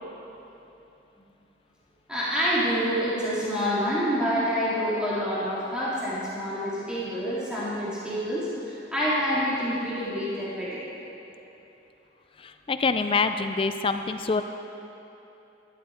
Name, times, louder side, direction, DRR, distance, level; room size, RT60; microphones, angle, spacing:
voice 1, 2.1-10.8, equal, 5° right, -9 dB, 2.1 m, -27 dB
voice 2, 12.4-14.4, left 4 dB, 25° left, 8 dB, 0.4 m, -26 dB
12.0 x 11.5 x 4.3 m, 3.0 s
head